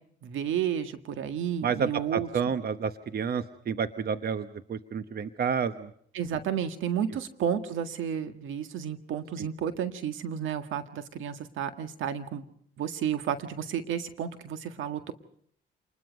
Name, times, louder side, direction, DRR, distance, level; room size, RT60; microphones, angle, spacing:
voice 1, 0.2-2.3 6.1-12.4 12.8-15.1, right 9 dB, 80° right, 9 dB, 1.8 m, -32 dB
voice 2, 1.6-5.9 9.4-9.5, right 6 dB, 50° right, 11 dB, 1.1 m, -30 dB
27.5 x 20.5 x 5.3 m, 0.63 s
cardioid pair, 90°, 20 cm